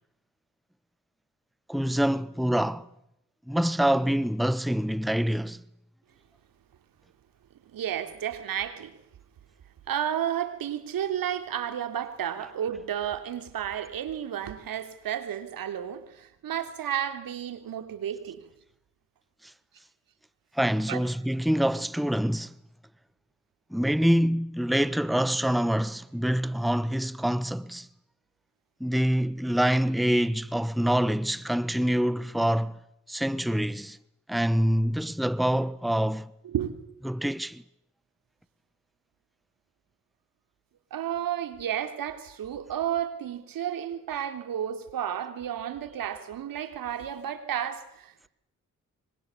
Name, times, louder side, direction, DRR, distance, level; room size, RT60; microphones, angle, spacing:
voice 1, 1.7-2.9 3.5-5.6 20.5-22.5 23.7-27.9 28.8-32.8 33.1-34.0 34.3-36.3 37.0-37.6, equal, ahead, 1.2 m, -25 dB
voice 2, 7.7-8.9 9.9-18.5 20.9-21.0 36.4-36.7 40.9-48.3, right 10 dB, 85° right, 3.4 m, -32 dB
26.0 x 24.5 x 8.4 m
supercardioid pair, 50°, 33 cm